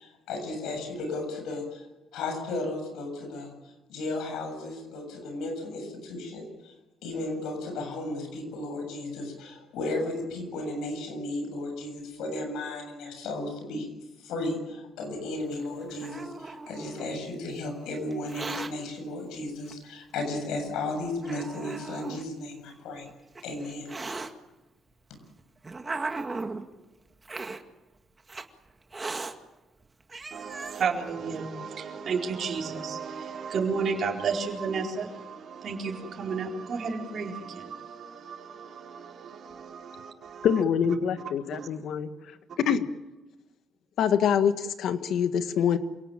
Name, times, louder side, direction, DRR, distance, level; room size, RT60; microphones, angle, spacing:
voice 1, 0.0-1.9 2.1-3.5 3.9-6.7 7.0-13.9 14.2-23.1 23.4-23.9, left 2 dB, 90° left, 7.5 m, -34 dB
Hiss, 15.5-17.2 18.1-18.7 19.7-19.8 20.6-20.7 21.2-22.2 23.1-24.3 25.1-26.6 27.2-27.6 28.3-28.4 28.9-29.3 29.8-29.9 30.1-30.8, right 3 dB, 25° right, 2.1 m, -37 dB
voice 2, 30.3-40.6 41.5-41.7, right 5 dB, 55° right, 4.4 m, -33 dB
voice 3, 40.4-42.1 42.7-42.9 44.0-45.8, left 8 dB, 75° left, 1.7 m, -25 dB
27.5 x 18.5 x 9.0 m
cardioid pair, 90°, 0 cm